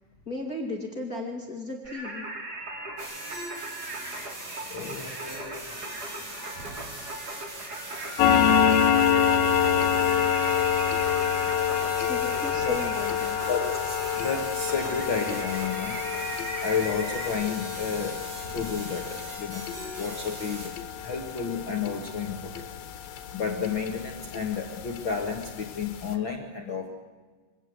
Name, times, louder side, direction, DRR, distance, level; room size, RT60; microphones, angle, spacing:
voice 1, 0.3-2.3 12.0-13.4, left 2 dB, 30° left, 1 dB, 2.1 m, -35 dB
Singing, 1.8-17.3, right 2 dB, 30° right, 2.4 m, -38 dB
sound 1, 3.0-20.7, right 1 dB, 55° right, 8.0 m, -41 dB
voice 2, 4.7-5.7 9.7-10.0 12.6-12.8 13.5-16.0 16.6-18.2 18.5-19.6 20.0-20.7 21.0-22.6 23.3-26.9, left 6 dB, 55° left, 2 dB, 1.4 m, -31 dB
sound 2, 8.2-23.3 23.7-23.9 24.3-24.4 24.9-25.0 25.4-25.5 25.8-26.0, left 8 dB, 75° left, 3.1 m, -26 dB
24.5 x 17.5 x 7.8 m, 1.4 s
omnidirectional pair, 4.6 m